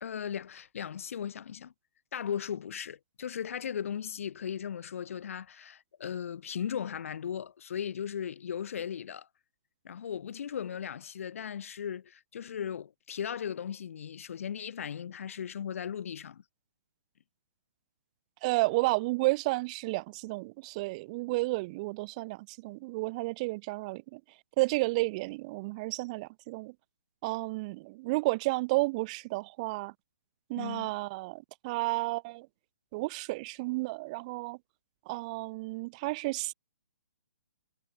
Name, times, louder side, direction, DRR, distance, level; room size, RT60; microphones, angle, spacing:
voice 1, 0.0-1.7 2.1-9.3 9.8-16.4 30.6-30.9, left 8 dB, 60° left, 0.7 m, -37 dB
voice 2, 18.4-24.2 24.6-26.7 27.2-29.9 30.5-32.5 32.9-34.6 35.1-36.5, right 23 dB, 30° right, 0.7 m, -32 dB
hypercardioid pair, 155°, 8 cm